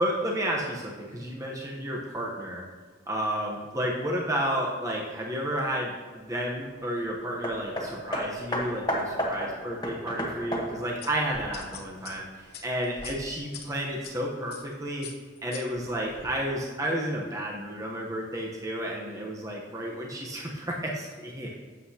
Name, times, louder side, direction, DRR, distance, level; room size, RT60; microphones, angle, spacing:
voice 1, 0.0-2.6 3.1-15.1 15.4-21.5, equal, 15° right, -2 dB, 0.9 m, -31 dB
Hammer, 7.4-12.2 13.0-13.1, equal, 20° left, 1.1 m, -32 dB
sound 1, 11.0-14.1 14.5-14.7 15.0-16.3, left 6 dB, 55° left, 0.9 m, -43 dB
12.0 x 7.9 x 2.8 m, 1.5 s
head